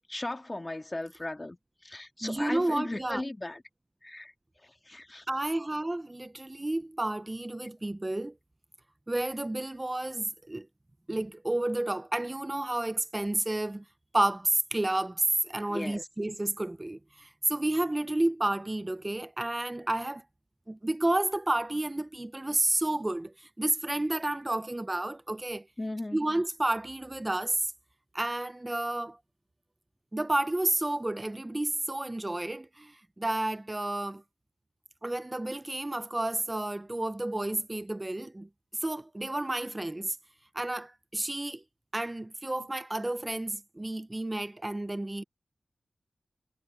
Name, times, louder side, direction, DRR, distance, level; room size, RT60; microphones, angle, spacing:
voice 1, 0.1-1.6 1.8-3.6 4.0-4.3 4.6-5.3 15.7-16.1 25.8-26.2, left 2 dB, 30° left, 2.2 m, -37 dB
voice 2, 2.2-3.2 5.3-8.3 9.1-10.7 11.1-13.8 14.1-20.2 20.7-25.7 26.1-27.7 28.1-29.2 30.1-34.2 35.0-38.5 38.8-40.2 40.5-41.6 41.9-45.2, right 1 dB, 25° right, 0.7 m, -31 dB
cardioid pair, 45°, 0 cm